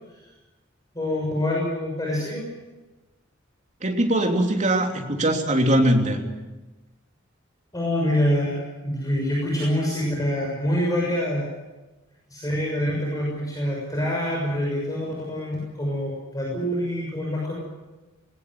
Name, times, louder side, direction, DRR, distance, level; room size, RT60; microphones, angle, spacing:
voice 1, 0.9-2.4 7.7-11.5 12.3-17.5, equal, 20° left, -3 dB, 6.5 m, -26 dB
voice 2, 3.8-6.2, right 1 dB, 35° right, 2 dB, 3.2 m, -21 dB
21.5 x 18.5 x 9.7 m, 1.1 s
head